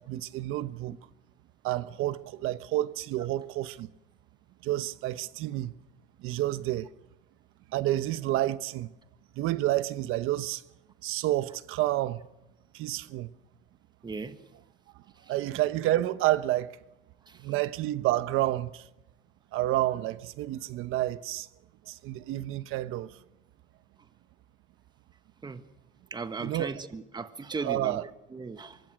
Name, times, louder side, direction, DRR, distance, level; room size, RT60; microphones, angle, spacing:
voice 1, 0.1-1.0 1.6-3.9 4.6-5.7 6.2-6.9 7.7-8.9 9.4-10.6 11.0-12.2 12.7-13.3 15.3-16.7 17.4-18.9 19.5-21.5 21.9-23.2 26.4-26.7 27.6-28.0, right 15 dB, 80° right, 1.1 m, -29 dB
voice 2, 14.0-14.4 15.2-15.3 17.3-17.5 25.4-25.6 26.1-28.8, right 4 dB, 20° right, 1.5 m, -38 dB
24.0 x 22.5 x 6.3 m
cardioid pair, 110°, 21 cm